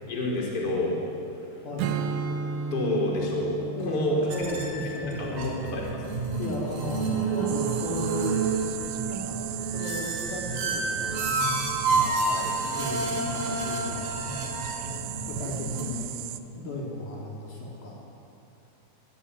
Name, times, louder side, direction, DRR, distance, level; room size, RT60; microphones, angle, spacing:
voice 1, 0.1-1.0 2.7-4.2 5.2-6.0 12.4-12.5, left 2 dB, 20° left, -2 dB, 4.6 m, -29 dB
voice 2, 1.6-2.0 3.6-6.0 6.4-8.6 9.1-9.4 9.7-14.4 15.1-16.1 16.5-18.0, left 1 dB, 55° left, -3 dB, 5.2 m, -36 dB
Strum, 1.8-7.1, right 5 dB, 70° right, 2.5 m, -35 dB
sound 1, 4.3-15.9, right 3 dB, 50° right, 5.1 m, -29 dB
sound 2, 7.5-16.4, right 15 dB, 85° right, 3.2 m, -37 dB
24.5 x 20.0 x 9.9 m, 2.9 s
omnidirectional pair, 5.5 m